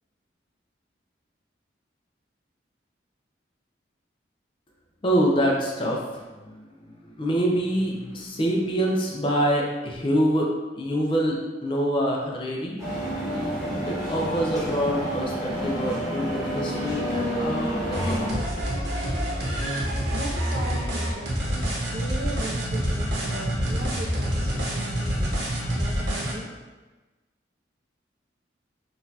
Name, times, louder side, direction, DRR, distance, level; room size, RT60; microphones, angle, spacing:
voice 1, 5.0-6.7 7.0-10.5 10.8-12.8 13.9-18.4, equal, 25° left, -1 dB, 0.4 m, -26 dB
sound 1, 12.8-18.3, equal, ahead, 1.1 m, -29 dB
sound 2, 17.9-26.3, equal, 70° right, 0.8 m, -27 dB
voice 2, 20.1-21.6 21.9-25.3 25.7-26.5, right 1 dB, 45° right, 0 dB, 0.4 m, -38 dB
3.9 x 2.4 x 2.7 m, 1.2 s
head